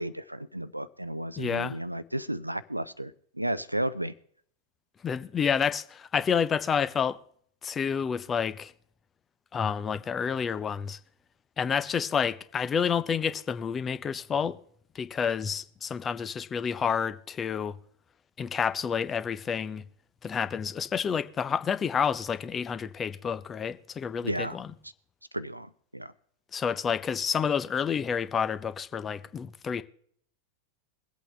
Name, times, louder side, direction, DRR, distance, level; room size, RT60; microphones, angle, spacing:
voice 1, 0.0-4.1 24.2-24.6 25.3-26.1, right 1 dB, 85° right, 0.5 m, -33 dB
voice 2, 1.4-1.8 5.0-7.2 7.6-8.7 9.5-11.0 11.6-14.6 14.9-17.8 18.4-19.8 20.2-24.7 26.5-29.8, left 7 dB, 20° left, 0.7 m, -29 dB
22.5 x 8.3 x 3.3 m
figure-of-eight pair, 90°, 0 cm